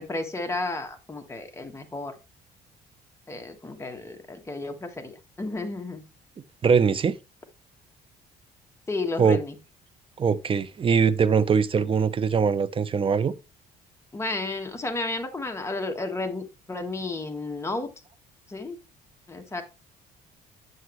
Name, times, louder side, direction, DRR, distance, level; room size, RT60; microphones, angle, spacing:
voice 1, 0.0-2.1 3.3-6.0 8.9-9.5 14.1-17.9 18.5-18.8 19.3-19.6, left 2 dB, 15° left, 1.6 m, -32 dB
voice 2, 6.6-7.2 9.2-9.4 10.2-13.3, right 6 dB, 30° right, 0.7 m, -22 dB
9.4 x 7.6 x 3.1 m
cardioid pair, 110°, 17 cm